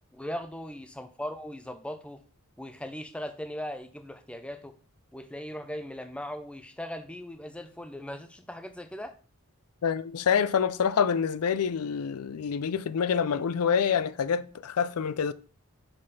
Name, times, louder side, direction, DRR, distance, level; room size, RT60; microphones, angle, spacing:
voice 1, 0.0-2.2 2.6-4.8 5.1-9.1, left 1 dB, 5° left, 0.4 m, -39 dB
voice 2, 9.8-15.3, left 7 dB, 85° left, 0.4 m, -26 dB
5.3 x 4.2 x 5.5 m
head